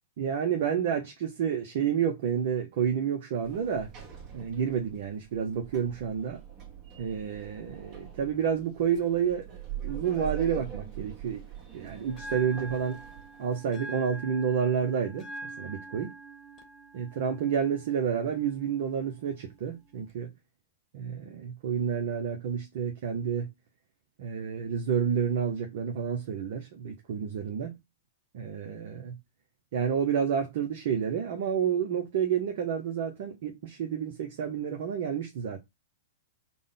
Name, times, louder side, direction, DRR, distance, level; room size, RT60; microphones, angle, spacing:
voice 1, 0.2-3.9 4.3-6.4 7.0-9.4 9.8-11.4 11.7-13.0 13.4-15.3 15.6-16.1 16.9-20.3 20.9-23.5 24.2-27.8 28.3-29.2 29.7-35.6, right 7 dB, 60° right, 0.6 m, -29 dB
Sliding door, 3.4-13.6, right 10 dB, 40° right, 1.2 m, -43 dB
Bell, 12.1-20.1, right 2 dB, 25° left, 1.0 m, -45 dB
3.6 x 2.2 x 3.6 m
hypercardioid pair, 115°, 0 cm